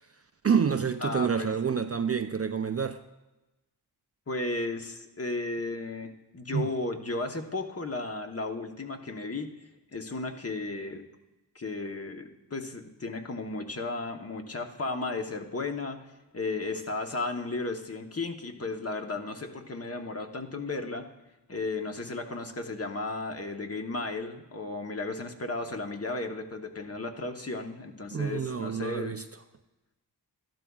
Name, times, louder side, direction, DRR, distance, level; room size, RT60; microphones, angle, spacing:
voice 1, 0.4-3.0 6.5-6.7 28.1-29.2, right 6 dB, 35° right, 0.4 m, -28 dB
voice 2, 1.0-1.5 4.3-9.5 9.9-11.0 11.5-16.0 16.3-21.1 21.5-29.2, left 3 dB, 35° left, 1.0 m, -34 dB
13.5 x 12.0 x 2.4 m
wide cardioid pair, 70°, 42 cm